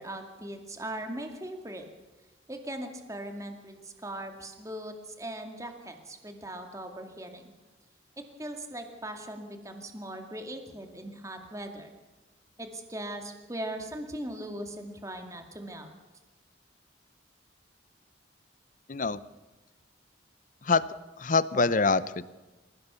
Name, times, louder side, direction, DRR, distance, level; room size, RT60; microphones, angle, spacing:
voice 1, 0.0-1.8 2.5-7.5 8.2-11.9 12.6-15.9, right 1 dB, 15° right, 5 dB, 2.3 m, -39 dB
voice 2, 18.9-19.2 20.6-20.8 21.2-22.2, left 4 dB, 40° left, 16 dB, 0.7 m, -25 dB
27.0 x 16.5 x 7.0 m, 1.2 s
head